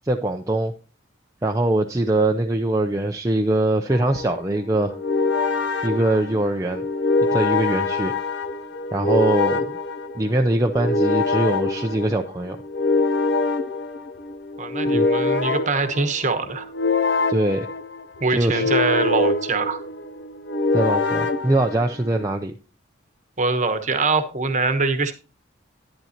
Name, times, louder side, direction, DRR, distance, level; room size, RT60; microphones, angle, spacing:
voice 1, 0.0-0.7 1.4-5.0 5.8-6.8 7.3-8.1 8.9-9.8 10.1-12.6 14.9-15.1 17.3-17.7 18.3-18.7 20.7-22.5, right 1 dB, 15° right, 3 dB, 0.5 m, -22 dB
sound 1, 3.9-22.3, left 3 dB, 60° left, 0.8 m, -24 dB
voice 2, 14.6-16.7 18.2-19.8 23.4-25.1, right 3 dB, 35° right, 9 dB, 1.1 m, -23 dB
11.0 x 10.5 x 2.9 m, 0.32 s
head